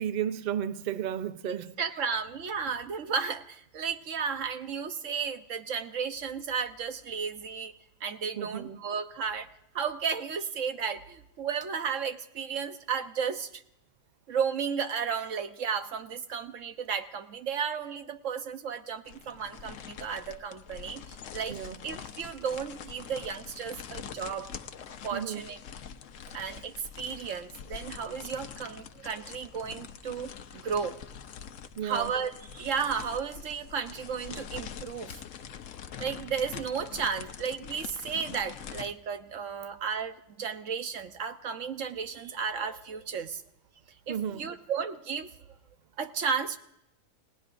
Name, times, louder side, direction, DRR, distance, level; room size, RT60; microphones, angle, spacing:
voice 1, 0.0-2.0 2.7-2.8 8.4-8.8 21.5-21.8 25.1-25.4 31.8-32.2 44.1-44.5, right 9 dB, 45° right, 0.6 m, -33 dB
voice 2, 1.8-7.7 8.0-9.5 9.7-13.6 14.3-24.5 25.0-25.6 26.3-31.0 31.8-35.2 36.0-43.4 44.1-45.3 46.0-46.6, right 6 dB, 70° right, 1.3 m, -33 dB
sound 1, 19.1-38.9, left 7 dB, 70° left, 1.1 m, -44 dB
29.5 x 17.5 x 2.6 m
omnidirectional pair, 1.4 m